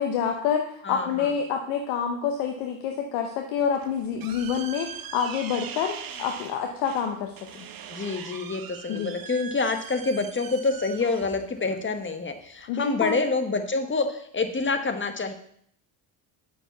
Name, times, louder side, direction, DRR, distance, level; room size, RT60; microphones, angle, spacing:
voice 1, 0.0-5.9 6.2-7.7 8.9-9.1 12.7-13.2, left 7 dB, 85° left, 3 dB, 0.9 m, -27 dB
voice 2, 0.8-1.3 7.9-15.3, left 3 dB, 25° left, 7 dB, 1.2 m, -27 dB
sound 1, 3.6-12.7, right 8 dB, 45° right, 0.9 m, -42 dB
6.2 x 5.3 x 7.0 m, 0.67 s
supercardioid pair, 70°, 50 cm